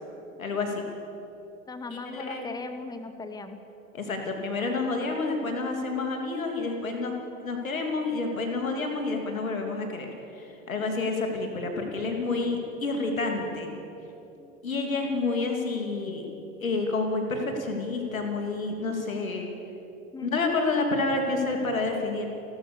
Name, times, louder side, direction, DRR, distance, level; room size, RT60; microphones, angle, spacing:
voice 1, 0.4-0.8 1.9-2.5 3.9-7.1 7.4-13.7 14.6-16.3 16.6-19.5 20.2-22.3, left 3 dB, 80° left, 3 dB, 3.0 m, -29 dB
voice 2, 1.7-3.6 5.1-5.2 20.1-20.5, left 3 dB, 10° left, 9 dB, 1.1 m, -38 dB
29.0 x 13.0 x 7.0 m, 3.0 s
figure-of-eight pair, 80°, 40 cm